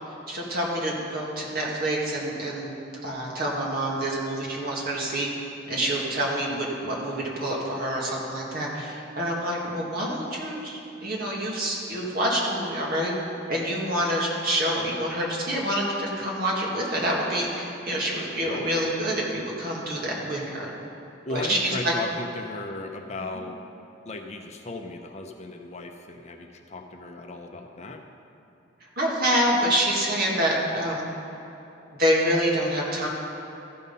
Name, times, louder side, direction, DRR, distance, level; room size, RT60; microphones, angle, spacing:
voice 1, 0.3-2.8 3.0-5.3 5.7-13.1 13.5-20.7 21.3-21.9 28.8-31.1 31.9-33.1, equal, 55° right, -3 dB, 1.9 m, -27 dB
voice 2, 18.4-18.8 21.3-23.6 24.1-28.0, left 2 dB, 35° left, 4 dB, 0.6 m, -36 dB
14.0 x 5.6 x 5.5 m, 2.9 s
head